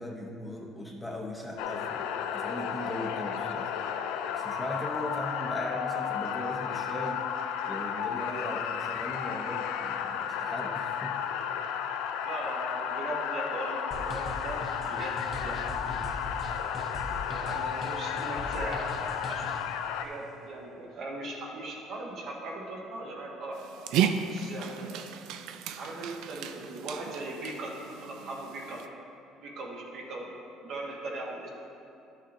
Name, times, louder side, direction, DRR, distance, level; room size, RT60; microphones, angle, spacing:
voice 1, 0.0-2.1 2.3-3.7 4.3-7.2 7.7-11.2, left 1 dB, 5° left, -2 dB, 0.8 m, -38 dB
sound 1, 1.6-20.1, left 8 dB, 90° left, 0.4 m, -33 dB
voice 2, 12.2-16.0 17.2-19.5 20.0-23.6 24.2-25.1 25.8-28.8 29.4-31.5, right 2 dB, 55° right, -2 dB, 1.3 m, -39 dB
sound 2, 13.9-19.7, left 2 dB, 40° left, 0.9 m, -40 dB
Dog, 23.5-28.9, right 8 dB, 75° right, 0.4 m, -34 dB
11.5 x 6.5 x 2.7 m, 2.7 s
cardioid pair, 130°, 0 cm